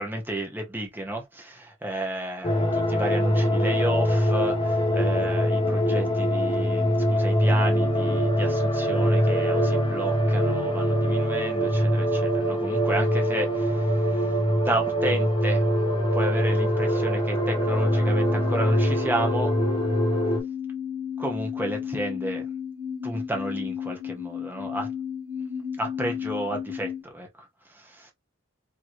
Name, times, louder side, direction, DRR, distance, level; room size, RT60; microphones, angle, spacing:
voice 1, 0.0-14.4 14.6-15.6 16.1-19.5 21.2-22.4 23.0-24.9 25.8-28.1, right 1 dB, 10° right, 1.4 m, -32 dB
sound 1, 2.4-20.4, equal, 25° left, 1.2 m, -23 dB
sound 2, 17.4-27.0, left 8 dB, 90° right, 2.1 m, -34 dB
4.7 x 3.3 x 3.1 m
head